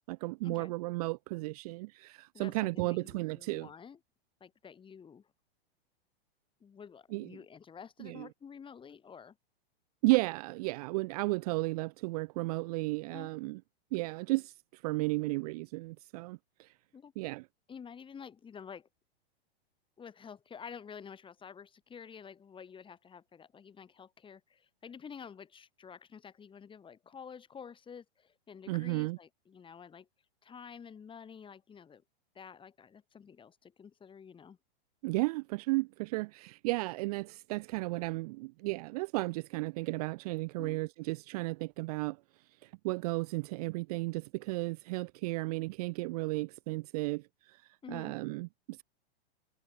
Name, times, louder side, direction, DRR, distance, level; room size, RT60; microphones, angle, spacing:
voice 1, 0.0-3.7 7.1-7.3 8.0-8.3 10.0-13.6 13.9-16.7 17.2-17.4 28.7-29.2 35.0-42.2 42.6-48.8, right 24 dB, 40° right, 0.4 m, -34 dB
voice 2, 2.3-4.0 4.4-5.3 6.6-9.4 13.1-13.3 16.9-17.1 17.7-18.9 20.0-30.1 30.4-32.0 32.3-34.6 40.6-40.8 47.8-48.1, left 7 dB, 15° left, 3.3 m, -50 dB
hypercardioid pair, 135°, 31 cm